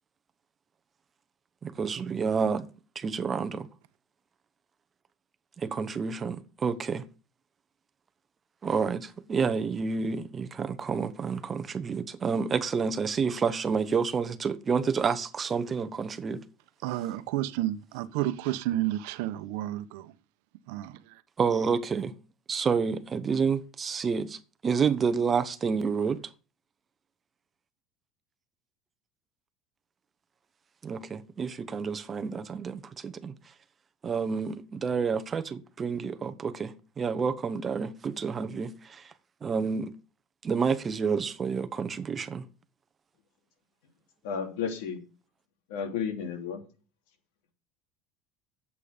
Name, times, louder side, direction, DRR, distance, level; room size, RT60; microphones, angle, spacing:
voice 1, 1.6-2.7 2.9-3.7 5.6-7.0 8.6-16.4 21.4-22.1 22.5-26.2 30.8-33.3 34.0-39.1 39.4-39.9 40.4-42.5, right 5 dB, 25° right, 0.9 m, -29 dB
voice 2, 16.8-20.1 20.7-21.2, right 14 dB, 75° right, 0.9 m, -31 dB
voice 3, 44.2-45.0 45.7-46.6, left 7 dB, 85° left, 2.8 m, -32 dB
11.0 x 8.3 x 5.1 m
cardioid pair, 145°, 0 cm